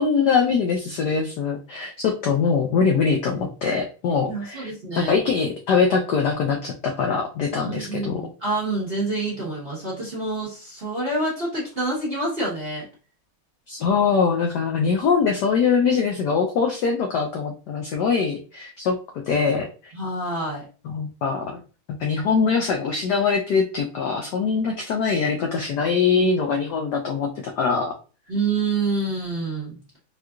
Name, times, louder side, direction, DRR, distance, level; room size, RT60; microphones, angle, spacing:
voice 1, 0.0-8.3 13.7-19.0 19.3-19.9 20.8-21.6 22.0-27.9, left 5 dB, 75° left, 2 dB, 0.9 m, -23 dB
voice 2, 4.3-5.1 7.5-12.9 19.9-20.6 28.3-29.8, right 2 dB, 35° right, -6 dB, 1.0 m, -27 dB
4.5 x 2.4 x 2.3 m, 0.35 s
omnidirectional pair, 2.3 m